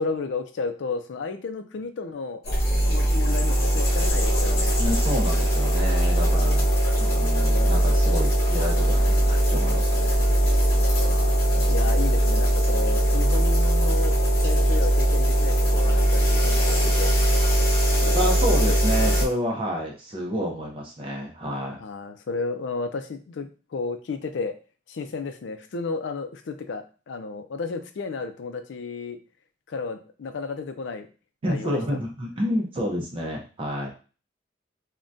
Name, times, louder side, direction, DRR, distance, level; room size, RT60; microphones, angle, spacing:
voice 1, 0.0-2.4 2.9-4.8 10.7-11.4 11.7-17.1 18.0-18.3 18.7-18.8 21.8-24.5 24.9-29.2 29.7-31.1 31.4-31.8, left 4 dB, 70° left, 8 dB, 0.4 m, -33 dB
sound 1, 2.4-19.2, right 1 dB, 50° left, 0.9 m, -20 dB
voice 2, 4.8-6.7 7.0-10.2 11.5-11.7 18.1-21.8 31.4-33.9, equal, 25° right, -1 dB, 0.5 m, -29 dB
3.5 x 2.2 x 2.6 m, 0.35 s
head